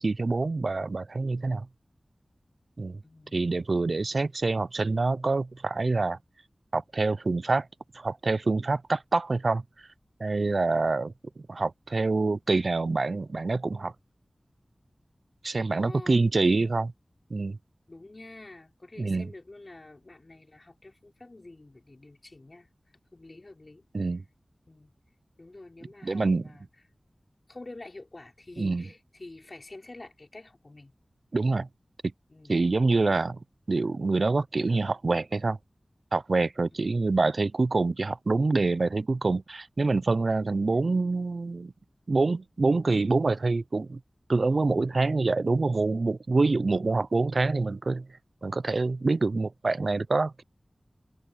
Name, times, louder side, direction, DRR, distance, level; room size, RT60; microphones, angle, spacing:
voice 1, 0.0-1.7 2.8-3.0 3.3-6.2 6.7-7.7 7.9-9.6 10.2-13.9 15.4-16.9 17.3-17.6 19.0-19.3 23.9-24.2 26.0-26.5 28.6-28.8 31.3-31.7 32.5-33.4 33.7-35.6 36.1-41.7 42.1-44.0 44.3-48.1 48.4-50.4, right 3 dB, 65° right, 0.5 m, -26 dB
voice 2, 3.0-3.4 4.1-4.3 15.7-16.2 17.9-22.7 23.1-23.9 24.7-24.9 25.4-26.7 27.5-31.0 32.3-32.8, left 2 dB, 45° left, 4.6 m, -47 dB
wide cardioid pair, 50°, 0 cm